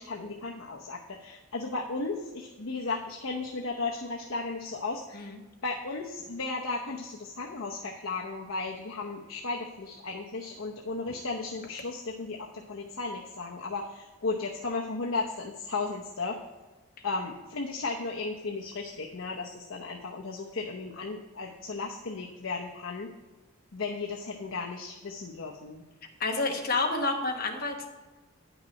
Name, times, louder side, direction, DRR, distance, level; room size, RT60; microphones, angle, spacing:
voice 1, 0.0-5.3 5.6-16.4 17.0-23.1 23.7-25.8, left 3 dB, 75° left, 0 dB, 0.8 m, -35 dB
voice 2, 26.2-27.9, left 3 dB, 45° left, 3 dB, 1.1 m, -29 dB
9.3 x 6.0 x 5.2 m, 1.2 s
head